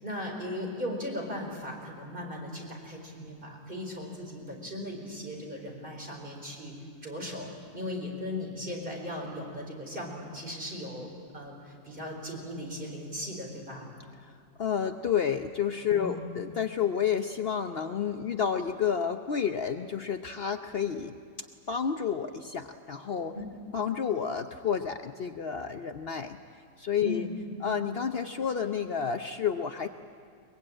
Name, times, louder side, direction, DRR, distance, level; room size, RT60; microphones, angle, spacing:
voice 1, 0.0-6.7 7.0-11.1 11.3-13.9 15.9-16.2 23.3-23.4 27.0-27.3, left 1 dB, 25° right, 0 dB, 4.6 m, -37 dB
voice 2, 14.6-21.2 21.7-23.3 23.7-26.4 26.8-27.3 27.6-29.9, left 7 dB, 85° left, 6 dB, 0.5 m, -30 dB
23.0 x 21.5 x 8.8 m, 2.3 s
omnidirectional pair, 2.0 m